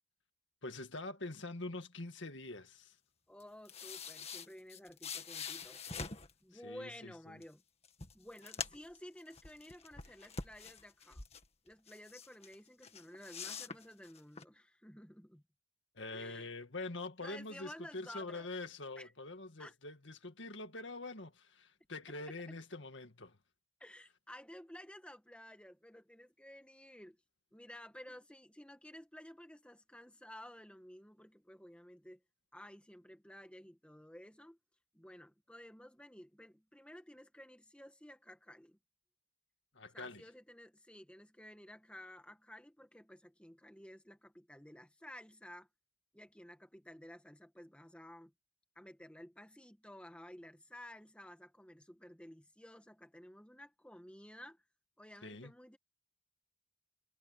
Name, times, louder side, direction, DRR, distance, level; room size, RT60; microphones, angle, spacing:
voice 1, 0.6-3.0 6.5-7.4 16.0-23.4 39.7-40.2 55.2-55.5, left 2 dB, 60° left, 2.1 m, -45 dB
voice 2, 3.3-5.8 6.4-7.6 8.1-11.2 11.6-15.4 16.1-16.5 17.2-18.5 19.0-19.1 19.6-19.7 23.8-27.2 27.5-32.2 32.5-34.6 34.9-38.8 39.9-45.7 46.1-48.3 48.7-54.6 55.0-55.8, left 1 dB, 5° left, 1.5 m, -53 dB
sound 1, 3.4-6.3 7.4-7.5 7.8-9.0 9.3-11.5 11.9-12.6 12.8-14.4, left 5 dB, 30° left, 2.0 m, -45 dB
head